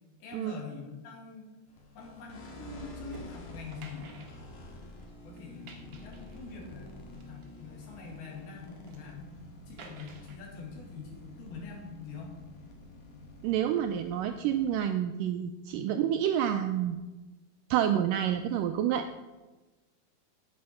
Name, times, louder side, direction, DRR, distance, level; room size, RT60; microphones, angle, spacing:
voice 1, 0.2-1.5 2.0-4.6 5.2-9.4 9.7-12.4 15.7-15.9, left 5 dB, 80° left, -1 dB, 4.0 m, -45 dB
sound 1, 1.7-14.8, left 1 dB, 55° left, 3.0 m, -49 dB
sound 2, 3.1-3.3 3.7-5.1 5.4-6.7 7.1-8.2 8.6-9.1 9.8-10.4, right 4 dB, 55° right, 1.8 m, -52 dB
voice 2, 13.4-17.0 17.7-19.1, right 10 dB, 85° right, 7 dB, 1.9 m, -28 dB
9.6 x 8.6 x 5.7 m, 1.1 s
omnidirectional pair, 4.3 m